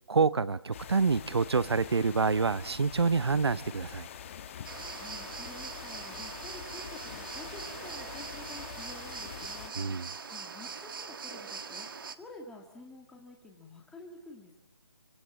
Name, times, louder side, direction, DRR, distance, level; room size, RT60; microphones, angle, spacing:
voice 1, 0.1-4.1 9.7-10.1, right 4 dB, 80° right, 1.1 m, -27 dB
sound 1, 0.7-9.7, left 8 dB, 30° left, 1.5 m, -45 dB
sound 2, 4.6-12.1, right 5 dB, 55° right, 1.6 m, -42 dB
voice 2, 5.0-9.7 10.3-11.9 12.2-14.6, left 2 dB, 5° left, 2.4 m, -49 dB
27.5 x 26.0 x 7.6 m
hypercardioid pair, 160°, 14 cm